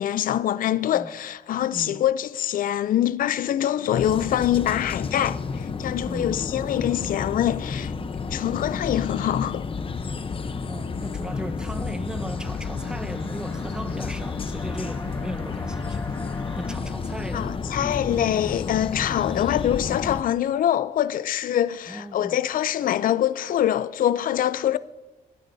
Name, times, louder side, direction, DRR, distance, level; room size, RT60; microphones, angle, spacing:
voice 1, 0.0-7.9 8.3-9.6 17.3-24.8, left 11 dB, 60° left, 0.4 m, -24 dB
voice 2, 1.7-2.0 6.0-6.5 8.0-8.2 10.5-16.2 16.5-17.7 21.9-22.4, right 1 dB, 5° right, 0.8 m, -37 dB
sound 1, 3.9-20.2, left 4 dB, 35° left, 0.8 m, -31 dB
sound 2, 12.3-16.8, left 2 dB, 20° left, 1.7 m, -44 dB
27.0 x 13.0 x 2.7 m
cardioid pair, 125°, 16 cm